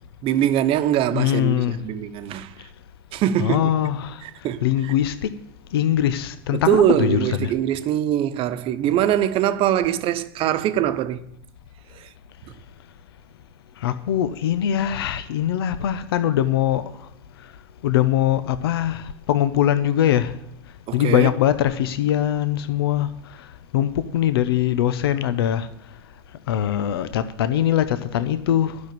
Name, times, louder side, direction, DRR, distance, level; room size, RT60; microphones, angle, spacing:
voice 1, 0.2-2.5 3.1-3.7 4.2-4.9 6.5-11.2 11.9-12.1 20.9-21.3, right 11 dB, 45° right, 1.0 m, -22 dB
voice 2, 1.1-1.8 3.4-4.2 4.6-5.3 5.7-7.4 13.8-16.8 17.8-20.3 20.9-23.1 23.7-25.7 26.5-28.8, left 11 dB, 75° left, 0.7 m, -22 dB
12.0 x 6.3 x 8.8 m
hypercardioid pair, 95°, 13 cm